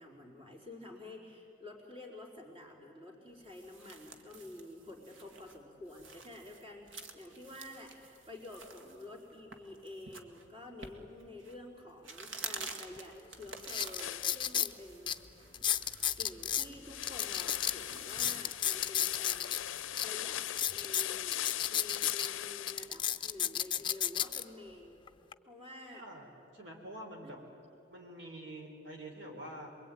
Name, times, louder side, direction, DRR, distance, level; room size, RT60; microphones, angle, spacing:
voice 1, 0.0-15.9 16.2-25.0 25.5-26.1 27.2-27.3, left 2 dB, 25° right, -1 dB, 4.3 m, -50 dB
sound 1, 3.3-20.0, right 4 dB, 80° right, 2.0 m, -50 dB
sound 2, 13.0-13.1 13.6-14.7 15.1-15.2 15.5-16.7 17.0-19.6 20.0-20.1 20.5-22.3 22.7-24.4 25.1-25.3, left 10 dB, 25° left, 0.6 m, -32 dB
sound 3, 14.0-14.5 16.8-22.9, left 13 dB, 80° left, 0.5 m, -39 dB
voice 2, 25.9-27.4 27.9-29.7, right 1 dB, 65° right, 1 dB, 3.7 m, -47 dB
27.5 x 22.5 x 9.3 m, 3.0 s
head